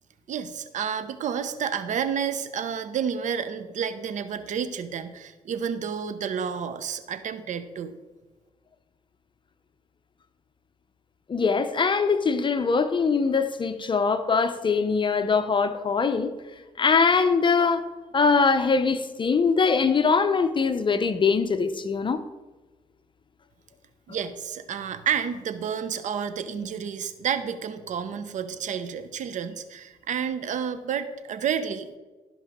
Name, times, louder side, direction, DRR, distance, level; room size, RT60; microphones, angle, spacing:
voice 1, 0.3-8.0 24.1-32.0, right 7 dB, 70° right, 0.9 m, -30 dB
voice 2, 11.3-16.3 16.8-17.8 18.1-22.2, left 5 dB, 40° left, 0.7 m, -22 dB
16.0 x 5.5 x 3.7 m
cardioid pair, 70°, 13 cm